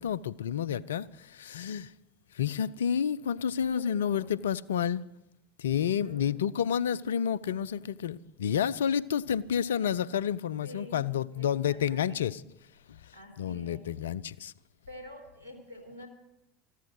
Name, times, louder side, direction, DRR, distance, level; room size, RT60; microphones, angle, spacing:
voice 1, 0.0-1.9 2.3-5.0 5.6-12.4 12.9-13.1 13.4-14.5, left 8 dB, 75° left, 0.4 m, -30 dB
voice 2, 3.6-4.3 5.9-6.5 10.6-12.3 13.1-13.9 14.9-16.1, left 1 dB, 85° right, 3.4 m, -48 dB
14.5 x 13.0 x 6.2 m
figure-of-eight pair, 75°, 0 cm